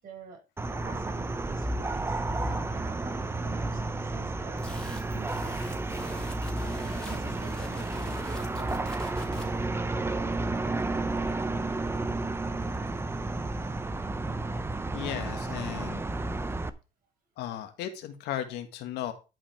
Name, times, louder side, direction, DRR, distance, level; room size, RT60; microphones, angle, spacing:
voice 1, 0.0-6.3 7.0-9.7, right 3 dB, 60° right, 1 dB, 5.1 m, -49 dB
sound 1, 0.6-16.7, right 2 dB, 15° right, 0.7 m, -32 dB
sound 2, 4.6-9.6, left 2 dB, 5° left, 3.0 m, -43 dB
voice 2, 14.9-16.1 17.4-19.1, left 11 dB, 85° left, 7 dB, 1.7 m, -36 dB
11.0 x 5.1 x 4.6 m, 0.30 s
cardioid pair, 110°, 17 cm